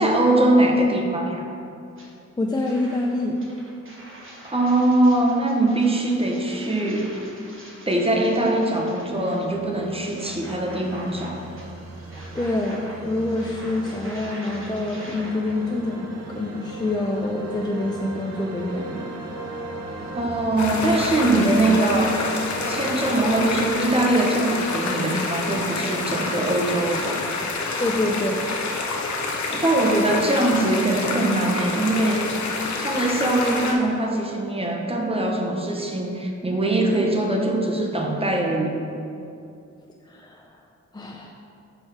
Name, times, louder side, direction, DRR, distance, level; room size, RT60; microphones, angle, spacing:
voice 1, 0.0-1.4 4.4-7.1 7.9-11.4 20.1-22.2 22.7-27.2 29.5-32.3 32.8-38.8, right 1 dB, 20° right, 0 dB, 0.8 m, -22 dB
sound 1, 1.9-2.1 2.5-15.5, right 1 dB, 45° right, 1.3 m, -44 dB
voice 2, 2.4-3.4 12.3-19.1 27.8-28.4 40.1-40.5 40.9-41.3, left 2 dB, 15° left, -1 dB, 0.4 m, -26 dB
sound 2, 9.0-23.7, right 2 dB, 60° right, 0.8 m, -36 dB
sound 3, 20.6-33.7, left 3 dB, 70° left, 0.8 m, -28 dB
6.5 x 4.1 x 4.7 m, 2.6 s
wide cardioid pair, 95°, 29 cm